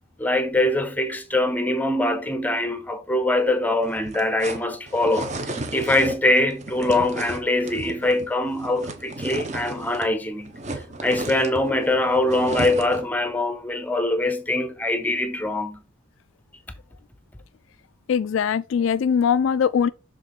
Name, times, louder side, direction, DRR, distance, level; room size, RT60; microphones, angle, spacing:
voice 1, 0.2-10.5 11.0-15.8, left 1 dB, 10° left, 0.7 m, -23 dB
sound 1, 3.8-10.2 10.4-13.1, right 2 dB, 35° right, 0.9 m, -34 dB
voice 2, 18.1-19.9, left 7 dB, 70° left, 0.3 m, -21 dB
6.5 x 3.8 x 4.1 m
head